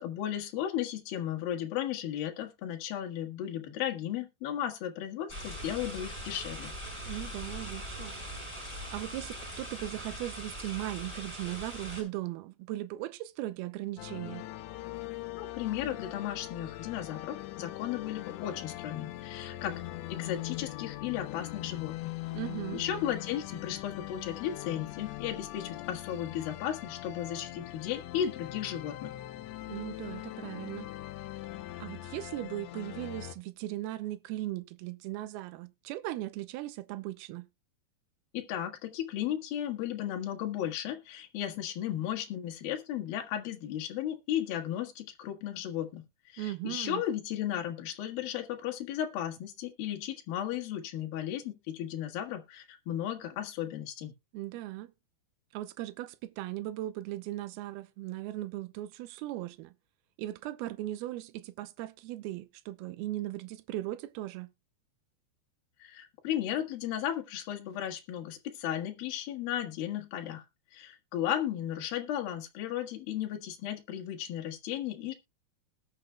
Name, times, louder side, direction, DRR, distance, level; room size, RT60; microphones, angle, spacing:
voice 1, 0.0-6.7 15.4-19.8 20.1-22.1 22.7-29.1 38.3-54.1 65.8-70.5 70.7-75.1, left 11 dB, 65° left, 3.0 m, -35 dB
sound 1, 5.3-12.0, equal, 5° right, 5.0 m, -41 dB
voice 2, 7.1-8.2 8.9-14.5 22.3-22.8 29.7-30.9 31.8-37.5 46.4-47.0 54.3-54.9 55.5-59.7 60.2-64.5, right 15 dB, 80° right, 2.4 m, -38 dB
sound 2, 14.0-33.4, left 16 dB, 85° left, 3.1 m, -41 dB
19.5 x 6.6 x 2.3 m
omnidirectional pair, 5.1 m